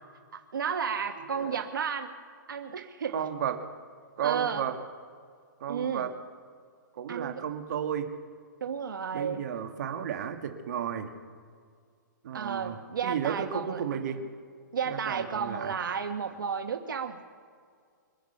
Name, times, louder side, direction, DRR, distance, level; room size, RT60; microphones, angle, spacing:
voice 1, 0.3-2.1 2.5-3.2 4.2-4.6 5.7-6.1 7.1-7.4 8.6-9.4 12.3-13.8 14.1-14.2 14.7-17.2, right 6 dB, 85° right, 5 dB, 1.3 m, -32 dB
voice 2, 3.1-3.6 4.2-4.8 5.6-6.2 7.0-8.1 9.1-11.1 12.2-14.2 14.9-15.7, right 8 dB, 55° right, 5 dB, 1.8 m, -33 dB
26.0 x 8.7 x 5.7 m, 2.1 s
hypercardioid pair, 155°, 11 cm